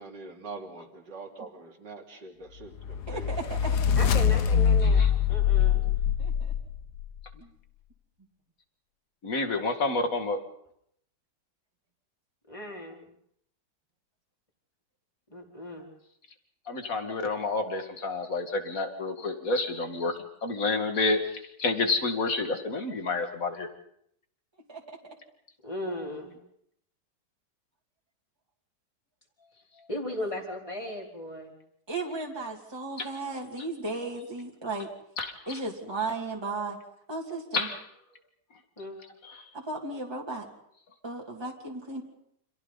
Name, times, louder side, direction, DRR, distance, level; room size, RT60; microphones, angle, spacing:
voice 1, 0.0-3.3, right 3 dB, 75° right, 1 dB, 3.6 m, -43 dB
sound 1, 2.8-7.1, left 7 dB, 65° left, 1.5 m, -24 dB
voice 2, 3.1-3.8 6.2-6.5 7.3-7.5 24.7-25.0 31.9-34.9 35.5-36.8 37.1-37.7 39.5-40.5 41.0-42.0, right 3 dB, 15° right, -1 dB, 2.9 m, -35 dB
voice 3, 4.0-5.0 5.3-5.9 12.5-13.1 15.3-15.9 25.6-26.4 29.9-31.5 38.8-39.0, left 1 dB, 15° left, 0 dB, 4.2 m, -36 dB
voice 4, 9.2-10.4 16.7-23.7 33.0-33.1 35.2-35.6 37.5-37.8 39.2-39.5, left 3 dB, 50° left, 5 dB, 2.6 m, -29 dB
29.5 x 27.0 x 4.1 m, 0.71 s
omnidirectional pair, 1.9 m